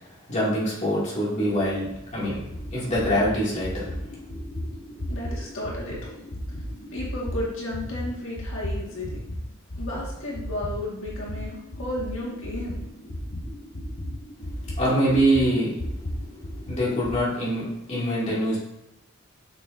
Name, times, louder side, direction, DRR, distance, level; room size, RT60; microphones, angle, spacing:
voice 1, 0.3-1.9 2.1-2.4 2.7-3.9 14.8-15.7 16.7-18.6, equal, 35° left, -7 dB, 2.5 m, -24 dB
sound 1, 1.8-9.4 9.7-17.2, equal, 50° left, 1.0 m, -35 dB
voice 2, 5.1-6.0 6.9-9.2 9.8-12.8, left 1 dB, 70° left, -4 dB, 1.9 m, -33 dB
6.7 x 6.2 x 2.7 m, 0.91 s
head